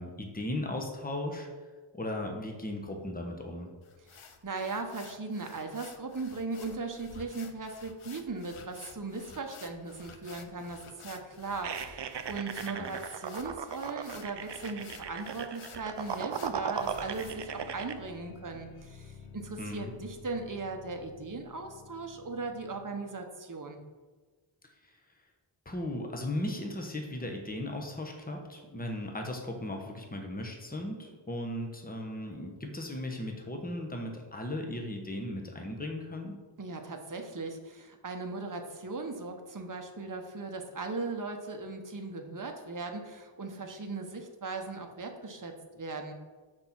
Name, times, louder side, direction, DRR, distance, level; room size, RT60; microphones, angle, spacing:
voice 1, 0.0-1.5 1.9-3.7 12.7-12.9 19.6-19.9 24.8-24.9 25.6-36.3, left 1 dB, 20° left, 1 dB, 1.1 m, -37 dB
sound 1, 3.8-17.3, left 6 dB, 85° left, 0.7 m, -52 dB
voice 2, 4.1-23.8 36.6-46.1, right 3 dB, 40° right, 4 dB, 0.9 m, -38 dB
sound 2, 11.6-17.9, right 7 dB, 60° right, 0.5 m, -38 dB
sound 3, 16.7-23.2, left 5 dB, 45° left, 1.5 m, -51 dB
6.2 x 4.3 x 6.1 m, 1.4 s
wide cardioid pair, 45°, 49 cm